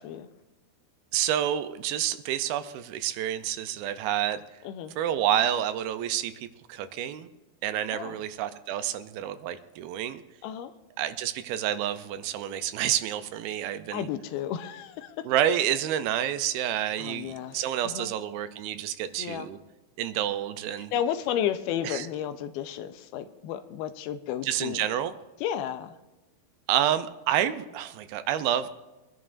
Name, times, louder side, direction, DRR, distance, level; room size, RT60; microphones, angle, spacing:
voice 1, 1.1-4.4 5.0-7.3 7.6-10.2 11.0-14.1 15.3-19.6 20.0-20.9 21.8-22.1 24.4-25.1 26.7-28.7, right 11 dB, 80° right, 11 dB, 2.4 m, -29 dB
voice 2, 4.6-4.9 7.9-8.2 10.4-10.7 13.9-15.2 17.0-17.6 17.8-18.1 19.2-19.5 20.9-24.8 25.4-25.9, left 10 dB, 85° left, 10 dB, 2.5 m, -32 dB
24.0 x 11.0 x 2.5 m, 1.1 s
omnidirectional pair, 4.4 m